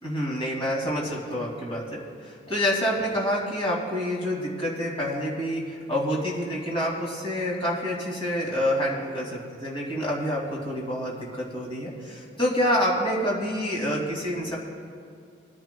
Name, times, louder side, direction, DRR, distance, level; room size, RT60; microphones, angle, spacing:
voice 1, 0.0-14.6, equal, 30° left, -4 dB, 2.5 m, -27 dB
21.5 x 10.5 x 2.2 m, 2.3 s
head